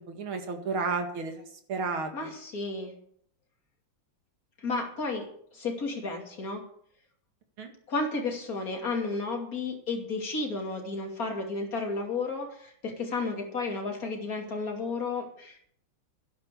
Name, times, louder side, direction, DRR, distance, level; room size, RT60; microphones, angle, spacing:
voice 1, 0.0-1.4 1.7-2.3 7.6-7.7, right 4 dB, 80° right, 5 dB, 2.8 m, -32 dB
voice 2, 2.1-2.9 4.6-6.6 7.9-15.6, left 3 dB, 45° left, 2 dB, 3.0 m, -32 dB
12.0 x 11.5 x 6.8 m, 0.65 s
omnidirectional pair, 2.3 m